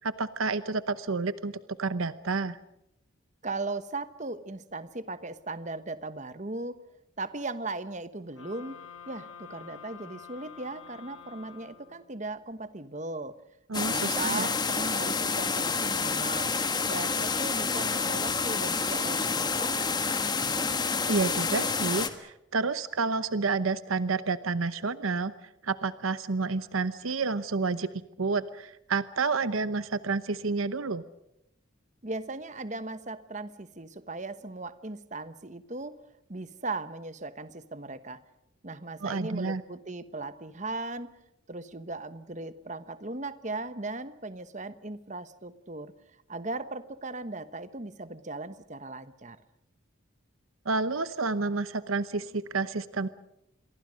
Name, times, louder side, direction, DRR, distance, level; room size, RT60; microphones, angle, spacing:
voice 1, 0.0-1.5 1.8-2.6 13.7-14.5 21.1-25.3 25.6-27.9 28.2-31.0 39.0-39.6 50.6-53.1, right 4 dB, 90° right, 14 dB, 0.9 m, -29 dB
voice 2, 3.4-6.8 7.2-8.8 9.1-13.3 13.9-16.5 16.9-19.9 32.0-36.0 36.3-38.2 38.6-41.1 41.5-45.9 46.3-49.4, right 2 dB, 35° right, 12 dB, 1.2 m, -38 dB
sound 1, 8.3-12.2, left 7 dB, 90° left, 7.0 m, -48 dB
sound 2, 13.7-22.1, left 4 dB, 20° left, 1.6 m, -28 dB
27.5 x 23.0 x 6.4 m, 0.84 s
head